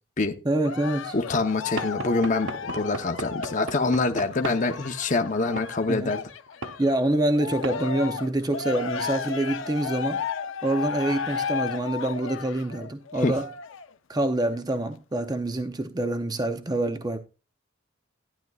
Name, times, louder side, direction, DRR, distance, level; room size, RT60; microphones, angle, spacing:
voice 1, 0.4-1.1 5.9-6.1 6.8-10.2 10.6-13.5 14.1-17.2, right 1 dB, 20° right, 0.6 m, -26 dB
Cheering, 0.6-6.9 7.3-13.9 14.5-14.6, left 6 dB, 75° left, 0.6 m, -34 dB
voice 2, 1.1-6.2 13.2-13.4, left 3 dB, 40° left, 0.8 m, -25 dB
Knock / Wood, 1.8-4.7 5.6-5.7 6.6-6.8 7.6-7.8, right 3 dB, 70° right, 0.7 m, -36 dB
12.0 x 10.5 x 2.3 m
head